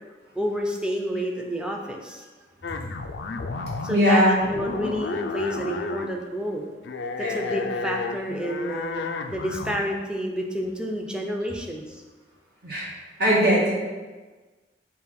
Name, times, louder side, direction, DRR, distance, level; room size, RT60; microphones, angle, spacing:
voice 1, 0.4-2.3 3.8-6.7 7.2-9.0 9.3-12.0, equal, 5° right, 1 dB, 0.6 m, -29 dB
sound 1, 2.6-4.1 4.4-6.2 6.8-9.8, left 3 dB, 85° left, 0.4 m, -31 dB
voice 2, 3.9-4.4 7.2-7.3 12.6-12.9 13.2-13.7, equal, 60° right, -6 dB, 1.6 m, -19 dB
6.9 x 2.9 x 4.7 m, 1.3 s
head